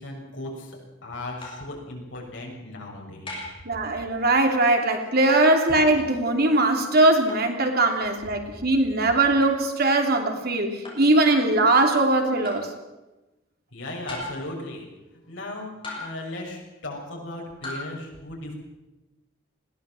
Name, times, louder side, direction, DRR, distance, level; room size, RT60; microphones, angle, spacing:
voice 1, 0.0-3.5 13.7-18.5, left 1 dB, 65° left, 0 dB, 6.5 m, -37 dB
sound 1, 1.4-1.7 3.3-3.7 5.3-5.6 7.3-7.5 9.4-9.6 10.8-11.1 12.4-12.7 14.1-14.5 15.8-16.3 17.6-17.9, left 2 dB, 25° left, 6.3 m, -37 dB
voice 2, 3.6-12.7, right 2 dB, 50° right, 4 dB, 3.0 m, -21 dB
21.0 x 17.0 x 7.7 m, 1.0 s
head